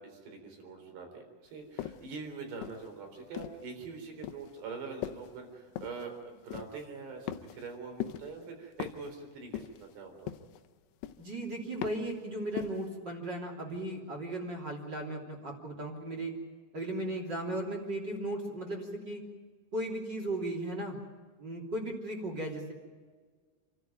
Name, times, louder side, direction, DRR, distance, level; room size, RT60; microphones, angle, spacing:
voice 1, 0.0-10.3, right 4 dB, 80° right, 4 dB, 6.1 m, -44 dB
sound 1, 1.8-2.1 2.6-3.7 4.2-4.5 5.0-5.4 5.8-6.1 6.5-6.9 7.3-7.7 8.0-8.4 8.8-9.1 9.5-9.9 10.3-10.7 11.0-11.4 11.8-12.1 12.6-12.9, left 12 dB, 85° left, 3.0 m, -40 dB
voice 2, 11.2-16.3 16.7-19.2 19.7-21.0 21.4-22.7, right 1 dB, 30° right, 0 dB, 3.2 m, -36 dB
28.5 x 13.5 x 9.2 m, 1.5 s
omnidirectional pair, 4.8 m